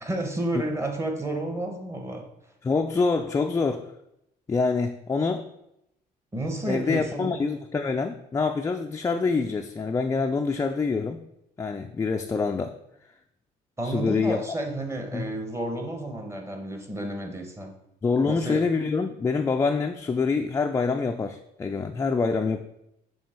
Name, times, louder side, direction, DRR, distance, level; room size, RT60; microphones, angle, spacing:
voice 1, 0.0-2.2 6.3-7.4 13.8-17.7 18.2-18.6, right 1 dB, 15° right, 4 dB, 1.0 m, -31 dB
voice 2, 2.6-3.9 4.5-5.4 6.7-11.2 11.6-12.7 13.8-14.4 15.1-15.3 18.0-22.6, left 4 dB, 20° left, 4 dB, 0.3 m, -26 dB
7.2 x 3.3 x 4.3 m, 0.82 s
cardioid pair, 110°, 17 cm